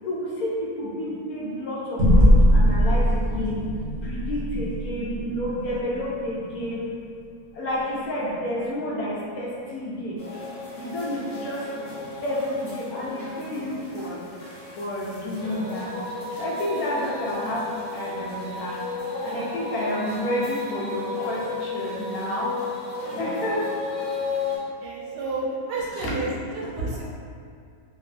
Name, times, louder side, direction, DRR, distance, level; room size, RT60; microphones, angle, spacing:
voice 1, 0.0-3.6 4.0-6.9 7.5-10.2 10.8-11.9 12.2-14.2 14.8-15.9 16.4-18.8 19.2-22.6 23.2-23.6 25.9-26.1 26.8-26.9, left 1 dB, 70° left, -6 dB, 1.0 m, -30 dB
sound 1, 2.0-6.8, equal, 50° right, 0.7 m, -21 dB
sound 2, 10.2-24.6, left 3 dB, 55° left, 0.6 m, -34 dB
voice 2, 24.8-27.0, right 2 dB, 80° right, -4 dB, 1.2 m, -31 dB
3.0 x 2.0 x 2.4 m, 2.3 s
omnidirectional pair, 1.8 m